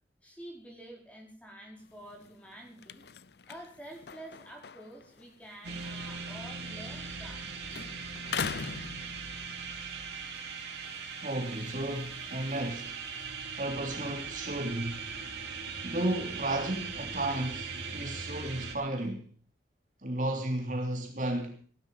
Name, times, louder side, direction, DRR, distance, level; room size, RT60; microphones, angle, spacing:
voice 1, 0.2-3.0 3.5-7.4, right 1 dB, 5° left, 4.8 m, -48 dB
sound 1, 1.8-7.4 7.7-9.7 10.2-13.3, left 6 dB, 65° left, 0.6 m, -43 dB
sound 2, 5.6-18.8, right 5 dB, 70° right, 4.6 m, -40 dB
voice 2, 11.2-13.0 13.5-15.0 15.8-19.3 20.0-21.6, right 1 dB, 45° right, 3.3 m, -33 dB
18.0 x 12.0 x 5.5 m
head